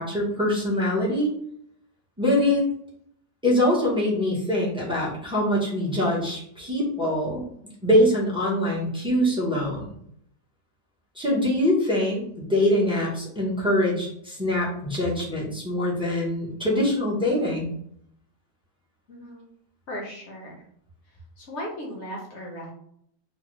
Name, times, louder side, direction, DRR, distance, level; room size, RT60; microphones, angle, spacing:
voice 1, 0.0-1.3 2.2-2.6 3.4-7.5 7.8-9.8 11.1-17.7, left 1 dB, 5° right, -6 dB, 0.4 m, -23 dB
voice 2, 19.1-19.5 19.9-20.6 21.1-22.7, equal, 55° left, -1 dB, 0.9 m, -37 dB
3.1 x 2.1 x 3.0 m, 0.67 s
omnidirectional pair, 1.7 m